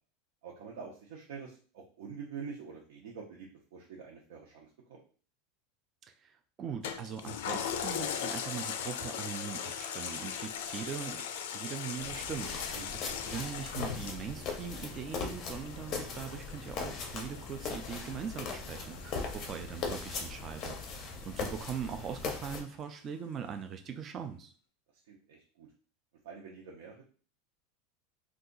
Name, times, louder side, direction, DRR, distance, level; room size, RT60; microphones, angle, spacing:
voice 1, 0.4-5.0 12.7-12.9 19.3-19.5 25.0-25.7 26.2-27.0, right 5 dB, 75° right, -2 dB, 0.7 m, -46 dB
voice 2, 6.2-11.2 11.5-24.5, right 7 dB, 20° right, 6 dB, 0.3 m, -41 dB
Toilet flush, 6.8-21.7 22.1-22.2, left 8 dB, 75° left, 0.4 m, -40 dB
sound 1, 12.0-22.6, left 4 dB, 30° left, 0.6 m, -39 dB
2.7 x 2.3 x 3.8 m, 0.40 s
supercardioid pair, 180°, 0 cm